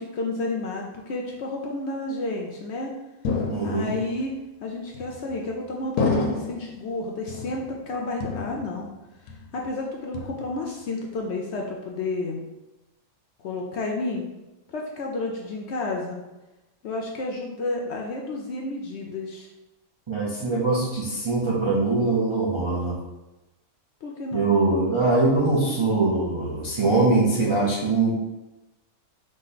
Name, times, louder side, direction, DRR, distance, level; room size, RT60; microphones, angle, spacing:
voice 1, 0.0-2.9 3.6-4.3 4.6-8.9 9.5-12.4 13.4-14.3 14.7-16.2 16.8-19.5 24.0-24.5, left 2 dB, 65° left, 0 dB, 0.7 m, -31 dB
sound 1, 3.2-4.1 4.9-5.5 6.0-6.8 7.3-7.9 8.2-9.0 9.3-9.7 10.1-10.7, left 3 dB, 80° left, 1.2 m, -29 dB
voice 2, 3.4-3.9 20.1-23.0 24.3-28.1, right 3 dB, 50° right, -5 dB, 0.3 m, -22 dB
4.9 x 2.2 x 4.0 m, 1.0 s
omnidirectional pair, 1.5 m